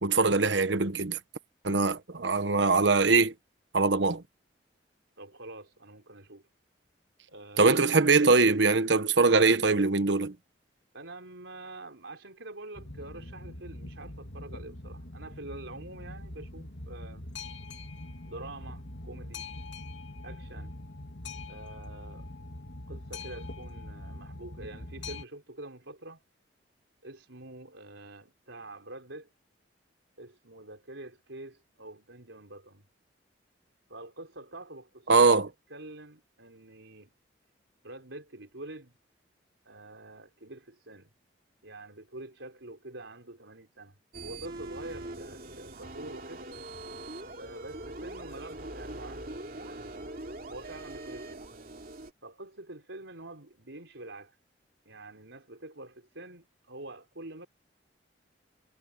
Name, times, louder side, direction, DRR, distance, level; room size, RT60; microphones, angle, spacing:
voice 1, 0.0-1.2 1.6-3.3 3.7-4.2 7.6-10.3 35.1-35.5, right 3 dB, 70° right, 1.1 m, -22 dB
voice 2, 5.2-6.5 7.3-8.4 10.9-17.2 18.2-19.5 20.2-20.7 21.5-22.3 22.9-26.2 27.0-29.3 30.2-32.8 33.9-35.3 35.7-37.1 37.8-38.9 39.6-41.1 41.6-44.0 44.2-46.5 47.4-50.1 50.5-51.5 52.2-54.4 54.8-57.5, right 2 dB, 90° right, 4.5 m, -46 dB
Boat Water vehicle, 12.7-25.2, left 2 dB, 75° left, 3.2 m, -43 dB
sound 1, 44.1-52.1, right 2 dB, 50° right, 2.9 m, -42 dB
head